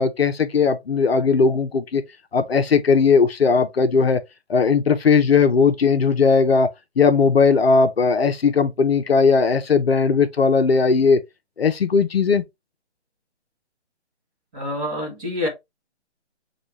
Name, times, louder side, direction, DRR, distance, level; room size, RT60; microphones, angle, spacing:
voice 1, 0.0-2.0 2.3-4.2 4.5-6.7 7.0-11.2 11.6-12.4, left 5 dB, 60° left, 0.8 m, -18 dB
voice 2, 14.5-15.5, left 1 dB, 5° right, 0.6 m, -27 dB
6.2 x 2.4 x 3.0 m
figure-of-eight pair, 145°, 35 cm